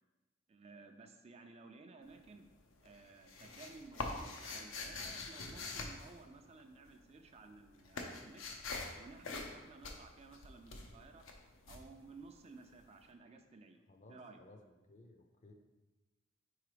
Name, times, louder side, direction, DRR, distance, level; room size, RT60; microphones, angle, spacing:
voice 1, 0.5-2.5 2.8-8.4 8.9-11.2 11.7-13.8 14.1-14.4, right 3 dB, 30° right, 5 dB, 0.4 m, -56 dB
sound 1, 2.0-2.6 2.8-6.9 7.2-12.8, left 3 dB, 85° left, 0.7 m, -44 dB
voice 2, 13.9-15.5, left 2 dB, 40° left, 4 dB, 0.6 m, -59 dB
4.7 x 4.0 x 5.0 m, 1.1 s
head